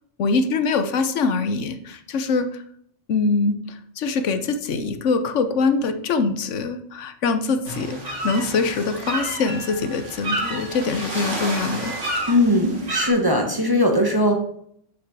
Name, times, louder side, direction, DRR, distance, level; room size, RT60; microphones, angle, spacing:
voice 1, 0.2-2.6 3.1-12.0, left 4 dB, 80° left, 10 dB, 1.1 m, -23 dB
sound 1, 7.6-13.1, right 1 dB, 80° right, 2.5 m, -30 dB
voice 2, 12.3-14.4, left 1 dB, 20° right, 3 dB, 1.2 m, -19 dB
6.7 x 6.2 x 6.0 m, 0.69 s
omnidirectional pair, 1.2 m